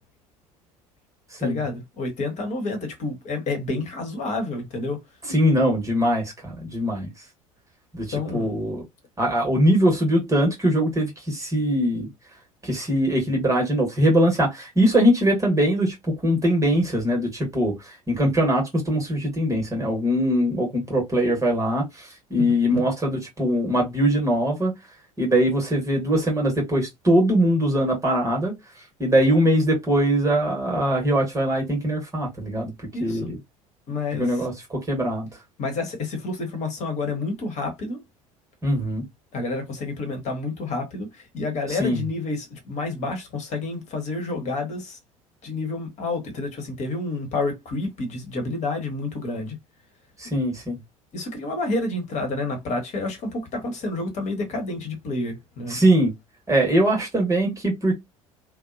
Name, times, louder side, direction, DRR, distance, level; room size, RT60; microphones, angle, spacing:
voice 1, 1.4-5.0 8.1-8.6 22.4-22.8 32.9-33.3 33.9-34.5 35.6-38.0 39.3-45.0 45.4-49.6 51.1-55.8, left 3 dB, 40° left, 1.2 m, -29 dB
voice 2, 5.3-7.1 7.9-8.1 8.3-8.8 9.2-12.1 12.6-15.9 16.2-17.7 18.1-24.7 25.2-28.5 29.0-32.7 33.0-33.4 34.2-35.3 38.6-39.0 41.8-42.0 50.2-50.8 55.7-56.1 56.5-58.0, equal, 15° right, 1.2 m, -21 dB
2.6 x 2.1 x 2.5 m
figure-of-eight pair, 65°, 18 cm